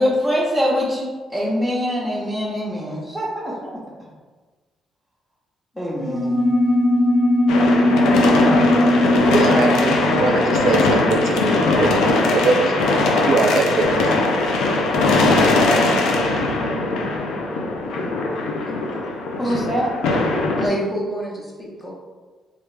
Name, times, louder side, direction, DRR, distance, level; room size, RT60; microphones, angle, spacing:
voice 1, 0.0-3.8 5.8-6.4 19.4-19.9, equal, ahead, -9 dB, 0.8 m, -23 dB
sound 1, 6.0-11.9, left 1 dB, 50° left, 1.1 m, -19 dB
sound 2, 7.5-20.7, left 2 dB, 85° left, 0.4 m, -20 dB
voice 2, 7.7-8.6 18.7-18.8 19.4-19.5 20.6-21.9, equal, 25° left, -3 dB, 0.9 m, -28 dB
voice 3, 9.1-11.5 11.7-14.0, right 4 dB, 65° right, 5 dB, 0.4 m, -22 dB
3.3 x 2.4 x 3.2 m, 1.3 s
cardioid pair, 90°, 0 cm